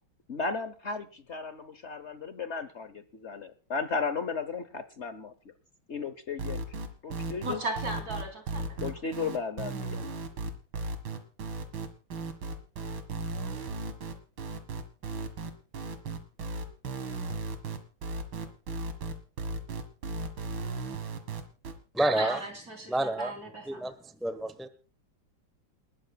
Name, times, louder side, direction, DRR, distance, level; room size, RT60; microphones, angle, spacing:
voice 1, 0.3-5.3 5.9-6.6 7.0-7.6 8.8-10.1, left 4 dB, 50° left, 11 dB, 0.8 m, -35 dB
sound 1, 6.4-21.7, right 3 dB, 70° right, 2.5 m, -35 dB
voice 2, 7.4-9.0 22.1-23.9, right 2 dB, 45° right, 3 dB, 4.3 m, -37 dB
voice 3, 21.9-22.4 22.9-23.3 23.7-24.7, right 1 dB, ahead, 9 dB, 0.5 m, -29 dB
29.0 x 12.5 x 2.3 m, 0.36 s
omnidirectional pair, 2.3 m